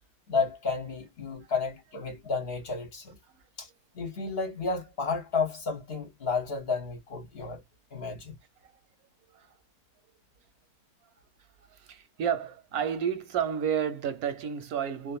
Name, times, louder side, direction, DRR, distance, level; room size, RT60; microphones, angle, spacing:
voice 1, 0.3-3.2 3.6-3.7 3.9-7.6 7.9-8.3, left 4 dB, 50° left, 0.9 m, -32 dB
voice 2, 11.7-15.2, right 8 dB, 85° right, 1.2 m, -31 dB
2.6 x 2.5 x 2.3 m
omnidirectional pair, 1.5 m